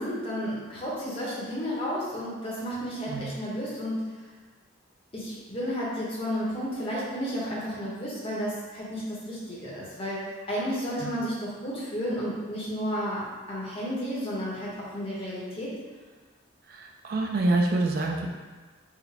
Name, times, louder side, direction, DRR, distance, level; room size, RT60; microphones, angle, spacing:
voice 1, 0.0-4.0 5.1-15.7, equal, 25° left, -6 dB, 0.9 m, -32 dB
voice 2, 16.7-18.3, right 2 dB, 45° right, 0 dB, 0.3 m, -26 dB
4.6 x 2.1 x 3.3 m, 1.4 s
head